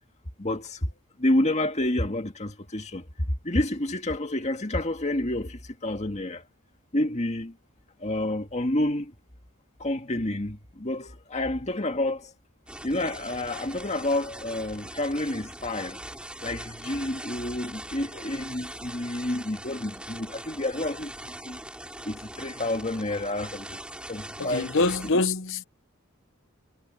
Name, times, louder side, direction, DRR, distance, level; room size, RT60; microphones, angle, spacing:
voice 1, 0.4-0.9 1.2-6.4 6.9-7.5 8.0-9.1 9.8-12.3 12.8-16.0 16.4-21.6 22.0-23.8 24.1-25.2, left 1 dB, 30° left, 1.9 m, -29 dB
sound 1, 12.7-25.1, right 1 dB, 5° right, 3.3 m, -41 dB
voice 2, 24.4-25.6, left 3 dB, 60° left, 0.9 m, -25 dB
head